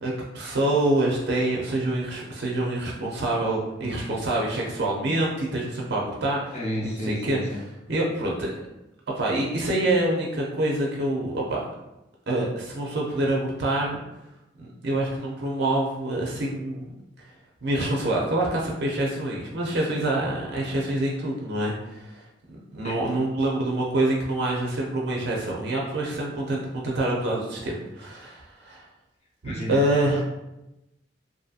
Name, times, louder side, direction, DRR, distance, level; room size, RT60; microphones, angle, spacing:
voice 1, 0.0-6.5 6.8-7.4 7.9-8.7 9.2-11.6 12.3-14.0 14.6-16.9 17.6-22.2 22.7-28.8 29.4-30.2, right 1 dB, 60° right, -2 dB, 0.5 m, -26 dB
voice 2, 6.5-7.6 22.8-23.0 29.4-29.8 30.1-30.2, equal, 35° left, -3 dB, 0.6 m, -32 dB
2.6 x 2.6 x 2.4 m, 0.92 s
head